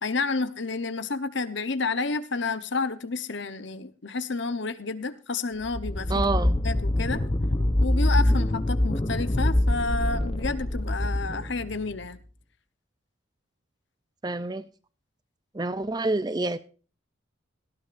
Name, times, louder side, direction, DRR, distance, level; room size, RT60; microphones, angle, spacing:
voice 1, 0.0-6.2 6.6-7.2 7.8-12.2, left 3 dB, 60° left, 1.0 m, -30 dB
sound 1, 5.6-12.0, left 1 dB, 25° left, 0.8 m, -25 dB
voice 2, 6.1-6.6 14.2-14.6 15.5-16.6, right 2 dB, 20° right, 0.5 m, -27 dB
18.0 x 13.5 x 2.6 m
head